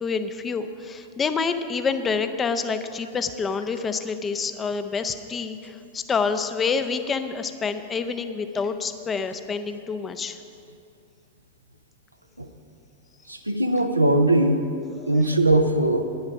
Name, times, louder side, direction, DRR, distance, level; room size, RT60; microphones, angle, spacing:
voice 1, 0.0-10.4 15.0-15.4, left 5 dB, 20° left, 9 dB, 0.6 m, -27 dB
voice 2, 13.3-14.7 15.1-16.0, right 1 dB, 85° right, 6 dB, 0.6 m, -20 dB
10.5 x 9.9 x 5.1 m, 2.5 s
figure-of-eight pair, 90°, 0 cm